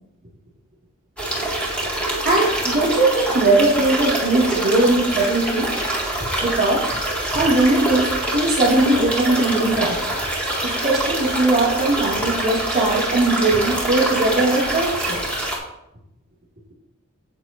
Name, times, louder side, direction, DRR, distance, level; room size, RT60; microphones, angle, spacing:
sound 1, 1.2-15.6, right 1 dB, 5° left, 1.9 m, -25 dB
voice 1, 2.2-5.7 6.4-6.9 7.3-10.2 10.6-15.2, right 2 dB, 40° right, -3 dB, 3.5 m, -19 dB
10.0 x 8.2 x 3.2 m, 0.85 s
head